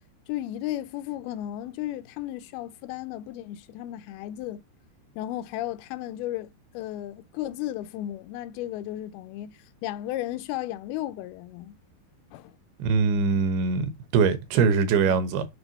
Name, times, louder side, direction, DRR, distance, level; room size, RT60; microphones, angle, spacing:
voice 1, 0.3-4.6 5.2-11.8 12.3-12.6, left 13 dB, 85° left, 2.5 m, -34 dB
voice 2, 12.8-15.5, right 5 dB, 90° right, 3.0 m, -22 dB
7.9 x 3.6 x 4.0 m
omnidirectional pair, 4.4 m